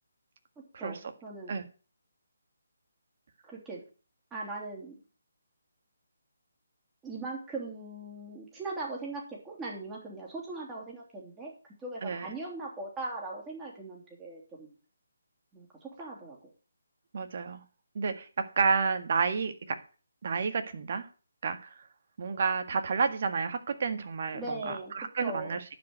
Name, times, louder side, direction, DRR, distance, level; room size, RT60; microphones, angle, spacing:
voice 1, 0.8-1.6 3.5-3.8 4.3-5.0 7.0-11.5 11.8-14.7 15.5-16.4 24.3-24.9 25.2-25.6, right 2 dB, 10° right, -3 dB, 3.2 m, -39 dB
voice 2, 17.1-17.6 17.9-18.3 18.6-19.8 20.2-21.1 21.4-21.7 22.2-25.6, right 5 dB, 50° right, 8 dB, 1.7 m, -30 dB
11.0 x 5.2 x 7.9 m, 0.36 s
hypercardioid pair, 160°, 0 cm